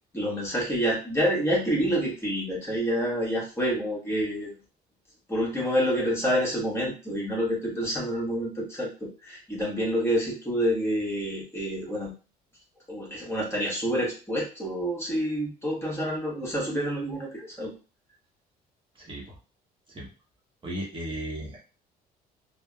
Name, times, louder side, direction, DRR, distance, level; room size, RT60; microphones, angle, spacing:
voice 1, 0.1-4.5 5.3-12.1 12.9-17.7, equal, 15° left, -3 dB, 1.2 m, -28 dB
voice 2, 19.0-19.4 19.9-20.1 20.6-21.6, right 1 dB, 30° right, -2 dB, 0.8 m, -35 dB
3.3 x 2.0 x 2.2 m, 0.34 s
cardioid pair, 110°, 17 cm